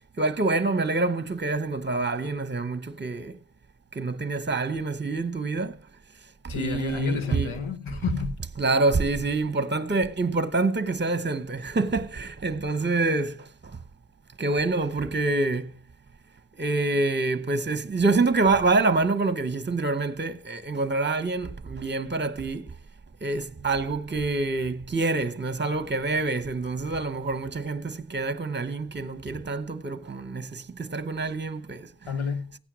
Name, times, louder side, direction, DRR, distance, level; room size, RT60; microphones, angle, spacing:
voice 1, 0.2-3.4 3.9-5.8 6.4-7.5 8.6-13.8 14.4-15.7 16.6-22.8 23.2-32.1, right 3 dB, 25° right, 0.9 m, -26 dB
voice 2, 6.5-8.4 32.1-32.6, left 6 dB, 90° left, 1.3 m, -30 dB
16.0 x 9.0 x 6.1 m
wide cardioid pair, 70°, 47 cm